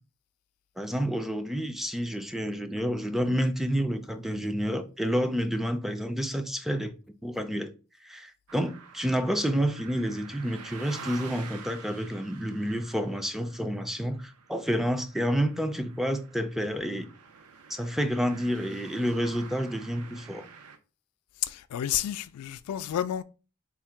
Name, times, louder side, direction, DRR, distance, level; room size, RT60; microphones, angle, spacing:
voice 1, 0.8-6.9 7.2-7.7 8.0-17.1 17.7-20.5, equal, ahead, 0.3 m, -29 dB
sound 1, 8.5-20.8, right 5 dB, 80° right, 0.5 m, -48 dB
voice 2, 21.4-23.2, left 11 dB, 85° left, 0.3 m, -30 dB
3.5 x 2.1 x 4.4 m
head